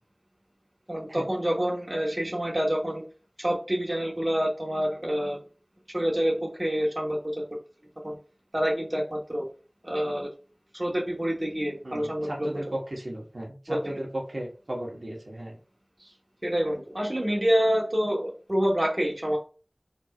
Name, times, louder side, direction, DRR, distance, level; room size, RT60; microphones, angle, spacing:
voice 1, 0.9-3.0 3.4-5.4 5.9-7.4 8.0-8.2 8.5-9.5 9.8-10.3 10.7-12.5 13.7-14.0 16.4-19.4, equal, 35° right, -1 dB, 1.4 m, -27 dB
voice 2, 11.8-15.6 16.0-16.1, right 1 dB, 85° right, -2 dB, 1.3 m, -35 dB
4.4 x 3.6 x 2.5 m, 0.36 s
wide cardioid pair, 40°, 0 cm